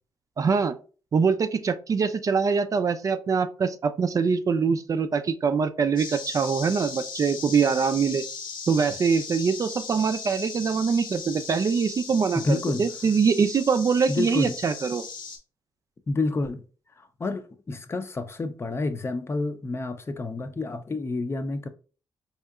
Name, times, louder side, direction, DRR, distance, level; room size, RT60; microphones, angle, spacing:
voice 1, 0.4-0.8 1.1-8.2 8.7-15.0, right 5 dB, 45° right, 0.4 m, -24 dB
sound 1, 6.0-15.4, left 5 dB, 75° left, 0.9 m, -38 dB
voice 2, 12.3-12.8 14.1-14.6 16.1-16.6 17.0-21.7, left 3 dB, 30° left, 0.5 m, -29 dB
4.2 x 2.7 x 2.4 m
cardioid pair, 65°, 8 cm